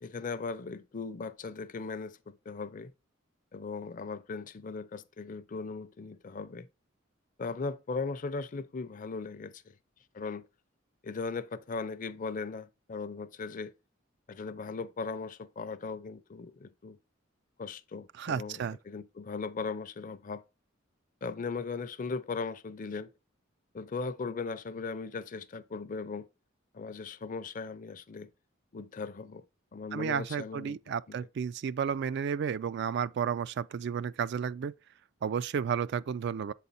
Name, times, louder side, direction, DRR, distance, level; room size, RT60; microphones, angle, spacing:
voice 1, 0.0-2.9 3.5-6.7 7.4-9.8 10.1-10.5 11.0-13.7 14.3-17.0 17.6-18.6 18.9-20.4 21.2-23.1 23.7-26.3 26.7-28.3 28.7-29.4 29.7-30.8 31.1-31.3, left 4 dB, 40° left, 0.5 m, -38 dB
voice 2, 18.2-18.8 29.9-34.7 35.2-36.5, right 7 dB, 60° right, 0.3 m, -32 dB
7.6 x 4.1 x 4.1 m
head